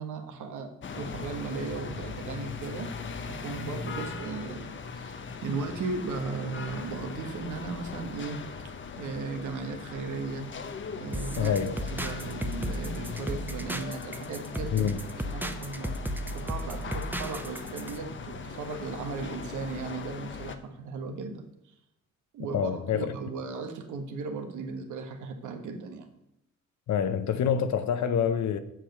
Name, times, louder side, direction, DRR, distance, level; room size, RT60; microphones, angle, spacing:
voice 1, 0.0-2.9 3.3-8.4 9.0-10.5 10.9-11.5 11.9-14.9 15.3-16.0 16.3-21.5 22.3-26.1, right 4 dB, 75° right, 1.5 m, -36 dB
sound 1, 0.8-20.6, left 5 dB, 40° left, 0.9 m, -40 dB
sound 2, 11.1-18.0, right 1 dB, 5° right, 0.8 m, -35 dB
voice 2, 11.4-12.0 14.7-15.0 22.5-23.1 26.9-28.6, left 8 dB, 65° left, 0.9 m, -27 dB
7.7 x 6.9 x 6.5 m
cardioid pair, 90°, 30 cm